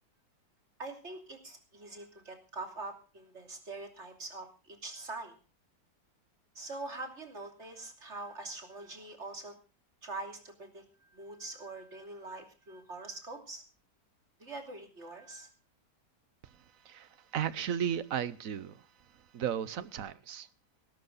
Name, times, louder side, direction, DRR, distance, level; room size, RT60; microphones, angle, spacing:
voice 1, 0.8-5.3 6.5-9.6 10.0-13.6 14.4-15.5, right 2 dB, 40° right, 4 dB, 3.3 m, -44 dB
voice 2, 16.9-18.8 19.3-20.5, right 9 dB, 55° right, 17 dB, 1.1 m, -34 dB
18.5 x 12.0 x 4.0 m, 0.34 s
omnidirectional pair, 1.9 m